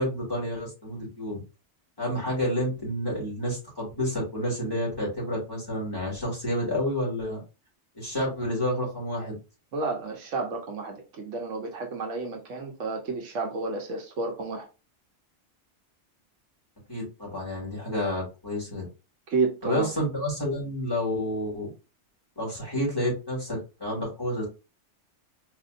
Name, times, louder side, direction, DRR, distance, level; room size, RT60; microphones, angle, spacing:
voice 1, 0.0-1.4 2.0-7.4 7.9-9.4 16.9-18.9 19.6-21.7 22.4-24.4, left 1 dB, 20° left, 2.7 m, -29 dB
voice 2, 9.7-14.7 19.3-19.9, right 4 dB, 90° right, 1.3 m, -31 dB
4.5 x 3.1 x 2.6 m
omnidirectional pair, 1.2 m